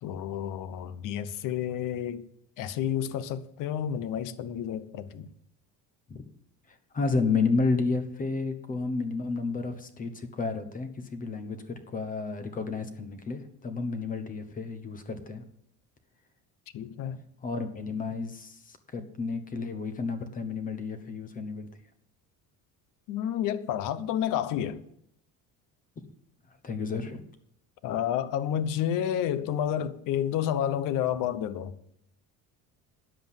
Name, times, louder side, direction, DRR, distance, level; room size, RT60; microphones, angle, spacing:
voice 1, 0.0-2.2 2.6-5.3 16.7-17.2 23.1-24.8 27.8-31.8, left 10 dB, 60° left, 0.9 m, -30 dB
voice 2, 6.7-15.4 17.4-21.7 26.6-27.3, left 4 dB, 20° left, 1.0 m, -31 dB
10.0 x 7.7 x 7.3 m
cardioid pair, 180°, 36 cm